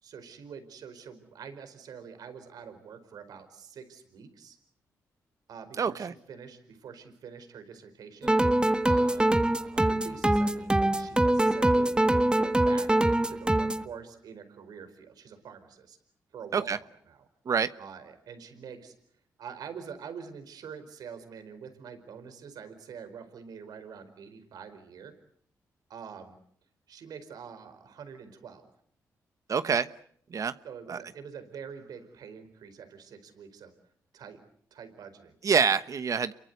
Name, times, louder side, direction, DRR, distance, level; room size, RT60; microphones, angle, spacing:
voice 1, 0.0-4.6 5.5-8.3 8.8-12.0 12.3-16.0 16.3-17.3 17.8-18.9 19.4-25.1 25.9-26.4 26.9-28.7 30.6-33.7 34.1-34.4 34.7-35.4, right 6 dB, 75° right, 10 dB, 4.7 m, -45 dB
voice 2, 5.8-6.1 16.5-16.8 17.5-17.7 29.5-29.9 30.3-30.5 30.9-31.0 35.4-36.3, right 6 dB, 55° right, 12 dB, 1.1 m, -26 dB
sound 1, 8.2-13.8, right 1 dB, 15° right, 1.6 m, -24 dB
28.0 x 23.0 x 8.1 m, 0.65 s
cardioid pair, 60°, 7 cm